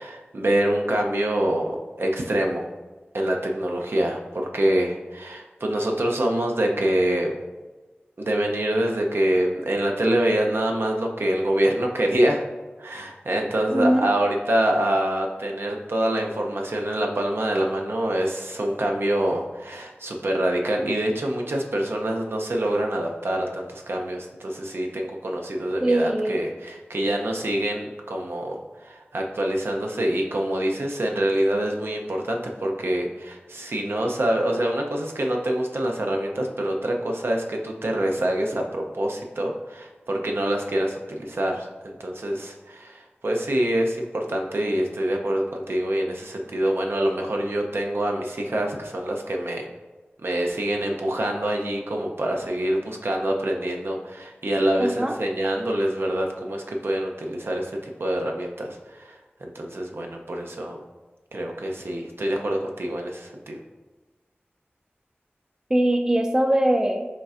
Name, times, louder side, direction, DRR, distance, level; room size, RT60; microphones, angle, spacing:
voice 1, 0.0-2.7 3.1-7.4 8.2-12.4 12.8-49.7 50.2-60.8 61.3-63.6, right 1 dB, 70° right, 1 dB, 0.5 m, -25 dB
voice 2, 13.7-14.0 25.8-26.4 54.8-55.2 65.7-67.1, right 1 dB, 15° right, 4 dB, 0.3 m, -21 dB
5.2 x 3.2 x 2.4 m, 1.2 s
wide cardioid pair, 65°, 4 cm